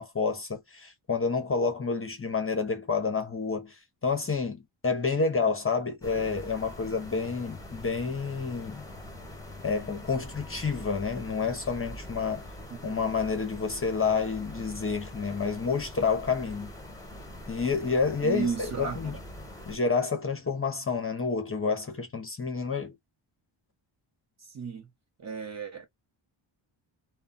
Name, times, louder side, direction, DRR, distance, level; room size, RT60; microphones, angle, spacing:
voice 1, 0.0-8.8 9.6-12.5 12.8-16.7 17.5-19.2 19.7-23.0, left 4 dB, 30° left, 0.7 m, -29 dB
sound 1, 6.0-19.8, left 1 dB, 5° left, 1.0 m, -43 dB
voice 2, 12.7-13.1 18.2-19.0 24.4-24.9 25.2-25.9, right 5 dB, 35° right, 0.9 m, -34 dB
2.2 x 2.2 x 3.8 m
wide cardioid pair, 110°, 49 cm